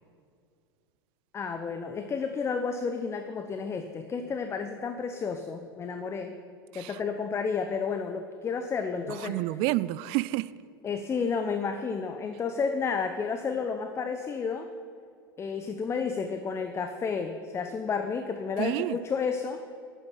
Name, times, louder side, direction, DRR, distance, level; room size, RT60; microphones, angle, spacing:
voice 1, 1.3-6.3 6.7-9.4 10.8-14.7 15.4-19.6, left 5 dB, 20° left, 8 dB, 0.9 m, -31 dB
voice 2, 9.1-10.5 18.6-19.0, right 18 dB, 45° right, 18 dB, 0.5 m, -29 dB
11.5 x 8.9 x 9.0 m, 2.3 s
figure-of-eight pair, 85°, 12 cm